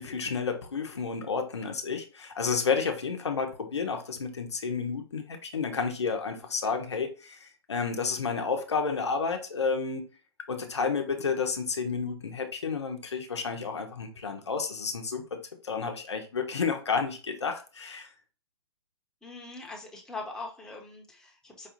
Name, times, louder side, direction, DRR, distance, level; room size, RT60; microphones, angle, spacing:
voice 1, 0.0-10.1 10.5-15.4 15.6-18.1, left 5 dB, 85° left, 0.7 m, -31 dB
voice 2, 19.2-21.7, left 3 dB, 5° left, 0.9 m, -41 dB
4.8 x 2.4 x 2.9 m
hypercardioid pair, 115°, 14 cm